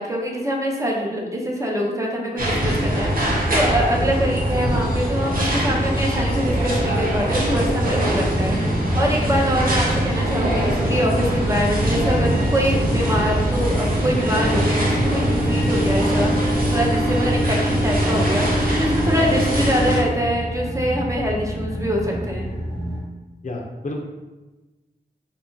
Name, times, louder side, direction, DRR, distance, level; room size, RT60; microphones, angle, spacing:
voice 1, 0.0-22.5, equal, 20° right, -1 dB, 0.6 m, -24 dB
sound 1, 2.4-20.0, right 1 dB, 55° right, 0.8 m, -22 dB
sound 2, 3.2-23.0, equal, 80° right, 1.4 m, -29 dB
voice 2, 23.4-23.9, left 2 dB, 45° left, 0 dB, 0.5 m, -30 dB
2.8 x 2.3 x 2.6 m, 1.1 s
cardioid pair, 40°, 18 cm